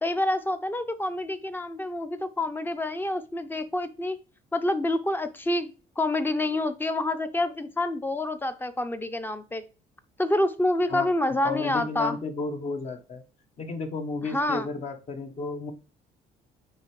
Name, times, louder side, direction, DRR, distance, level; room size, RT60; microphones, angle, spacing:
voice 1, 0.0-4.2 4.5-9.6 10.2-12.2 14.3-14.7, left 1 dB, 10° left, 10 dB, 0.7 m, -27 dB
voice 2, 11.4-13.2 13.6-15.7, left 3 dB, 40° left, 6 dB, 1.2 m, -32 dB
9.4 x 3.3 x 3.2 m, 0.33 s
cardioid pair, 110°, 17 cm